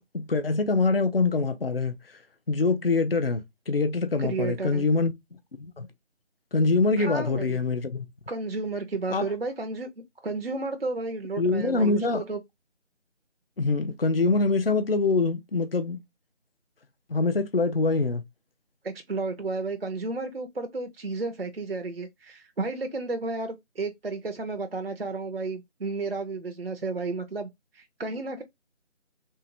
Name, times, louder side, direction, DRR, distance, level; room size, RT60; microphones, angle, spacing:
voice 1, 0.0-2.2 2.5-5.1 5.6-5.9 6.5-8.1 9.1-9.2 11.4-12.2 13.6-16.0 17.1-18.2, left 3 dB, 55° left, 0.5 m, -24 dB
voice 2, 4.2-4.9 7.0-7.6 8.3-9.9 10.2-12.4 18.8-28.4, right 3 dB, 55° right, 0.5 m, -32 dB
3.1 x 2.8 x 2.9 m
figure-of-eight pair, 175°, 36 cm